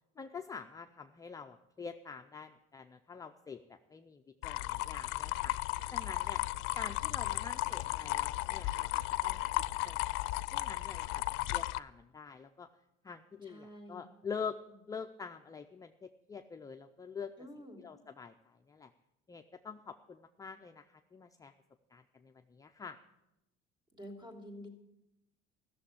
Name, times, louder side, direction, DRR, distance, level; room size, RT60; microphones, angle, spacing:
voice 1, 0.2-5.5 5.9-6.4 6.7-9.4 9.8-10.1 10.5-11.2 11.5-12.7 13.0-14.6 14.9-17.3 17.8-18.9 19.3-21.5 21.9-23.0, left 6 dB, 15° left, 5 dB, 0.5 m, -46 dB
sound 1, 4.4-11.8, left 18 dB, 75° left, 0.5 m, -35 dB
voice 2, 13.4-14.1 17.4-17.8 23.9-24.7, equal, 20° right, 4 dB, 3.0 m, -49 dB
14.0 x 6.9 x 10.0 m, 0.89 s
cardioid pair, 140°, 21 cm